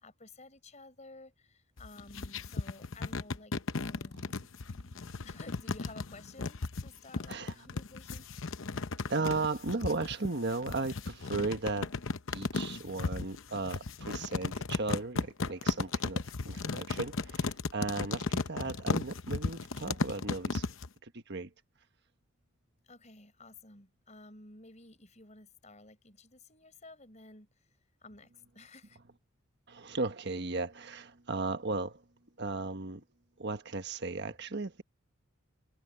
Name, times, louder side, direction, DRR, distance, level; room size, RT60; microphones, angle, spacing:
voice 1, 0.0-3.5 3.8-4.5 5.2-8.3 22.9-27.5 28.0-29.0, left 2 dB, 35° left, 5.0 m, -53 dB
sound 1, 1.8-20.9, left 3 dB, 65° left, 0.8 m, -35 dB
voice 2, 4.1-4.5 4.9-5.2 7.2-7.7 9.1-12.0 12.3-20.6 21.0-21.5 29.7-32.1 32.4-33.0 33.4-34.8, right 3 dB, 50° right, 1.4 m, -36 dB
head